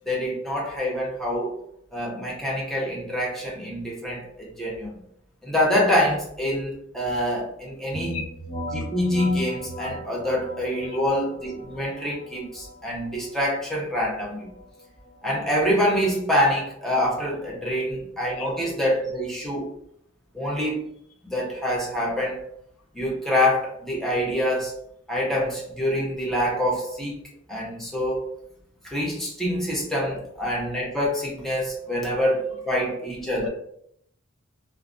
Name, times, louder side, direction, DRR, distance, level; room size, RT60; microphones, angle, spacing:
voice 1, 0.1-1.5 1.9-5.0 5.4-8.1 8.7-14.5 15.2-19.7 20.3-20.9 21.2-22.4 22.9-24.8 25.1-27.2 27.5-28.3 28.8-33.4, equal, ahead, -5 dB, 0.6 m, -26 dB
sound 1, 7.9-17.5, equal, 45° left, 1.2 m, -39 dB
voice 2, 17.6-18.0 18.4-18.5 30.1-30.3 31.9-32.0 32.5-32.6 33.4-33.5, left 5 dB, 90° left, 4 dB, 0.5 m, -37 dB
2.4 x 2.1 x 2.4 m, 0.71 s
head